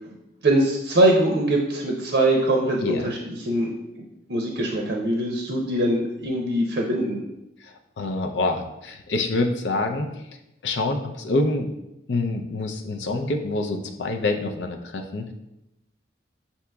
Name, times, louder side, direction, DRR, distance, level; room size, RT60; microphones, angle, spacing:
voice 1, 0.4-3.7 4.3-7.2, right 1 dB, 60° right, 0 dB, 0.6 m, -22 dB
voice 2, 7.6-10.1 10.6-11.7 12.1-15.3, left 2 dB, 75° left, 4 dB, 0.5 m, -26 dB
7.1 x 2.9 x 2.2 m, 0.88 s
head